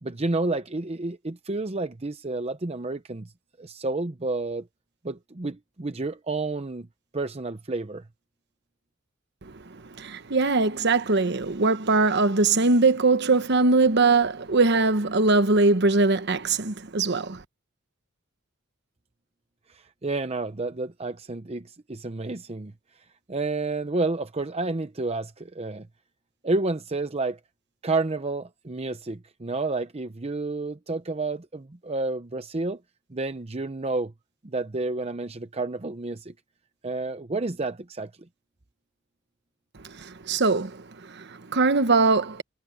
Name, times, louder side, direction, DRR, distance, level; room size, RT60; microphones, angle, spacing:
voice 1, 0.0-3.2 3.6-4.7 5.0-6.9 7.1-8.0 19.7-22.7 23.3-25.9 26.4-27.4 27.8-32.8 33.1-34.1 34.4-36.3 36.8-38.1, right 3 dB, 30° right, 0.7 m, -30 dB
voice 2, 10.0-17.4 40.0-40.8 41.1-42.4, right 3 dB, 55° right, 1.1 m, -21 dB
head